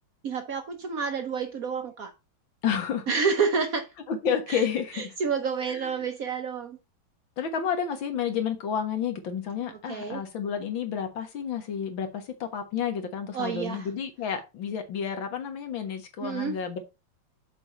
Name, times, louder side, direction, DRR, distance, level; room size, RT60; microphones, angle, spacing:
voice 1, 0.2-2.1 3.1-3.9 4.5-4.7 4.9-6.8 9.6-10.2 13.3-13.9 16.2-16.6, right 5 dB, 60° right, 1.0 m, -29 dB
voice 2, 2.6-3.0 4.1-5.1 5.8-5.9 7.4-16.8, left 7 dB, 75° left, 2.2 m, -30 dB
6.8 x 4.7 x 5.4 m
omnidirectional pair, 2.2 m